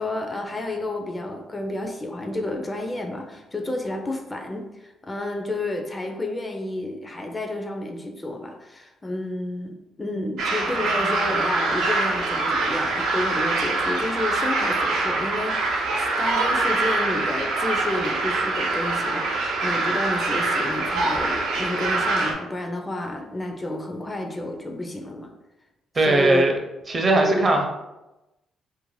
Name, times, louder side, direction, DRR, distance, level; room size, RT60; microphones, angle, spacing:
voice 1, 0.0-25.3 26.0-26.4 27.2-27.4, left 1 dB, 20° left, 3 dB, 0.3 m, -30 dB
sound 1, 10.4-22.3, right 3 dB, 85° right, 0.5 m, -24 dB
voice 2, 25.9-26.5 26.9-27.7, right 2 dB, 35° right, 2 dB, 0.5 m, -19 dB
2.5 x 2.0 x 3.1 m, 0.98 s
cardioid pair, 90°, 0 cm